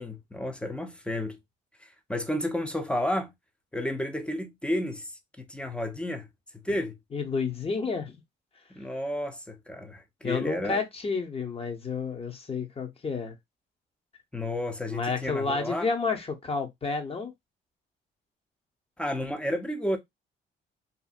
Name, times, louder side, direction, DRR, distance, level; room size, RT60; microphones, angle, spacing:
voice 1, 0.0-1.4 1.8-3.3 3.7-6.3 6.5-7.0 8.7-10.8 14.3-15.9 19.0-20.0, left 1 dB, 5° left, 0.7 m, -32 dB
voice 2, 7.1-8.1 10.2-13.3 14.9-17.3, left 4 dB, 30° left, 0.9 m, -30 dB
2.7 x 2.6 x 2.4 m
supercardioid pair, 70°, 20 cm